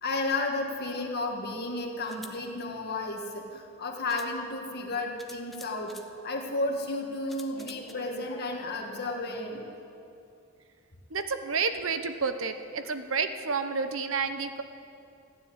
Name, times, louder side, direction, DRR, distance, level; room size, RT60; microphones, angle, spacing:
voice 1, 0.0-5.9 6.2-9.6, left 2 dB, 50° left, 1 dB, 1.9 m, -32 dB
sound 1, 2.0-2.4 3.5-3.6 4.1-4.3 5.2-6.1 7.3-7.9, left 1 dB, ahead, 0.8 m, -49 dB
voice 2, 11.1-14.6, right 5 dB, 70° right, 9 dB, 0.9 m, -30 dB
15.0 x 10.0 x 8.7 m, 2.6 s
head